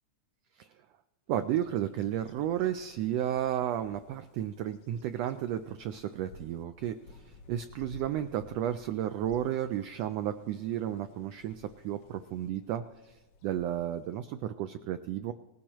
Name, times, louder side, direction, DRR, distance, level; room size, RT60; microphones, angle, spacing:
voice 1, 1.3-15.3, right 11 dB, 90° right, 9 dB, 1.4 m, -33 dB
Bird vocalization bird call bird song, 1.4-14.6, left 4 dB, 65° left, 1.8 m, -56 dB
19.0 x 15.0 x 3.0 m, 1.1 s
omnidirectional pair, 3.4 m